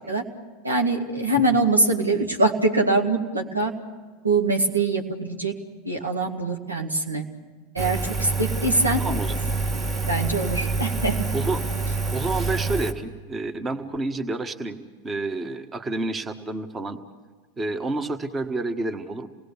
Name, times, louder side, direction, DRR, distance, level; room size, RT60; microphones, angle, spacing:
voice 1, 0.6-3.7 4.2-5.6 5.8-7.3 7.7-9.0 10.1-11.3, right 2 dB, 85° right, 3 dB, 1.9 m, -23 dB
Engine, 7.8-12.9, right 3 dB, 40° right, 2.0 m, -27 dB
voice 2, 9.0-9.3 11.3-11.6 12.1-17.0 17.6-19.3, right 2 dB, 20° right, 8 dB, 1.5 m, -29 dB
28.5 x 19.5 x 7.2 m, 1.4 s
figure-of-eight pair, 85°, 0 cm